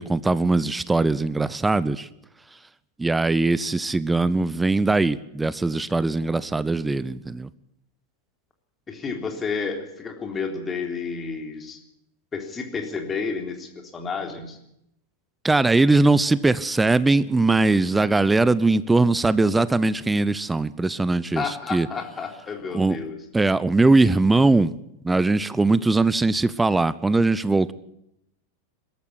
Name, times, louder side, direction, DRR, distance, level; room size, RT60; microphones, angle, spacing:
voice 1, 0.0-2.1 3.0-7.5 15.4-21.9 22.7-23.0 23.3-24.7 25.0-27.7, right 3 dB, 10° right, 18 dB, 0.7 m, -20 dB
voice 2, 8.9-11.8 12.3-14.6 21.4-23.2, left 5 dB, 20° left, 4 dB, 3.6 m, -31 dB
21.5 x 13.5 x 9.8 m, 0.81 s
figure-of-eight pair, 90°, 0 cm